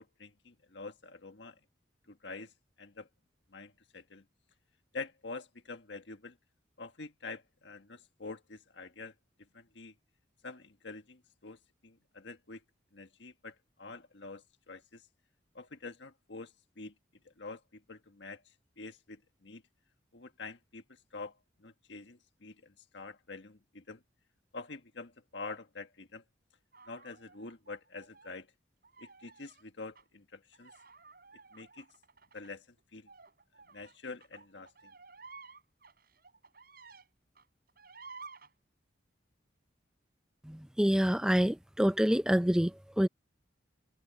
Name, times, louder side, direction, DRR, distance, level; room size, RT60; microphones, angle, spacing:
voice 1, 0.0-1.6 2.1-2.5 2.8-3.1 3.5-4.2 4.9-6.4 6.8-9.1 9.5-9.9 10.4-12.6 12.9-15.0 15.5-16.9 17.2-18.4 18.8-19.6 20.1-20.8 21.1-24.0 24.5-26.2 26.9-28.5 29.0-30.7 31.5-31.9 32.3-32.6 32.9-33.1 33.7-34.9, left 3 dB, 75° left, 1.5 m, -46 dB
sound 1, 26.7-28.4 28.8-29.6 29.9-30.0 30.5-37.1 37.3-38.5, right 4 dB, 50° right, 7.3 m, -54 dB
voice 2, 40.5-43.1, equal, 5° right, 0.4 m, -27 dB
head